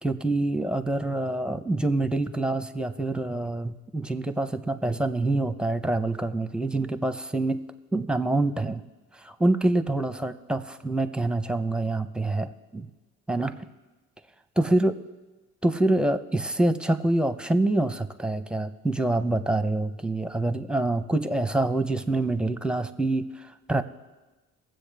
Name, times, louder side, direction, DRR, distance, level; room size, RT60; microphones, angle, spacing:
voice 1, 0.0-7.6 7.9-8.8 9.1-12.9 13.3-13.6 14.6-14.9 15.6-23.8, right 2 dB, 5° right, 10 dB, 0.7 m, -26 dB
21.5 x 7.8 x 3.4 m, 1.1 s
cardioid pair, 90°, 30 cm